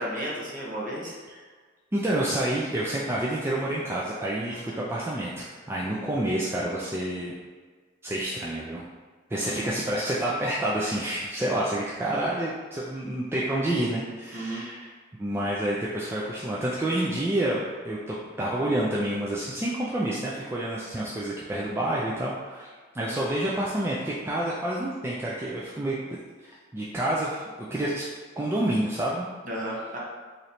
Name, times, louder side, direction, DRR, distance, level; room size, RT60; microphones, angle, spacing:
voice 1, 0.0-1.1 4.5-4.8 9.3-9.7 14.3-14.6 23.1-23.2 29.4-30.0, right 1 dB, 40° right, -5 dB, 0.9 m, -34 dB
voice 2, 1.9-7.3 8.0-8.8 9.3-14.9 15.2-22.7 22.9-26.2 26.5-27.4 27.7-28.1 28.4-29.3, right 1 dB, 10° right, -6 dB, 0.3 m, -28 dB
3.1 x 2.6 x 4.1 m, 1.4 s
head